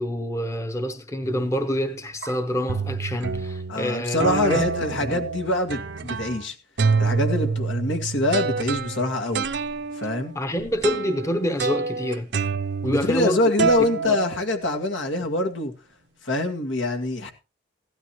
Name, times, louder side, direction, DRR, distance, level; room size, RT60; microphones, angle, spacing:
voice 1, 0.0-4.6 5.0-5.2 10.3-12.3 12.8-14.2, equal, 15° left, 0.9 m, -27 dB
sound 1, 1.2-1.6 2.2-2.3 2.7-3.8 4.2-6.4 6.8-13.3 13.6-15.0, right 5 dB, 60° right, 0.7 m, -27 dB
voice 2, 3.7-6.6 7.0-9.5 9.9-10.3 12.8-15.7 16.2-17.3, left 2 dB, 80° left, 2.1 m, -25 dB
16.0 x 12.5 x 3.1 m
head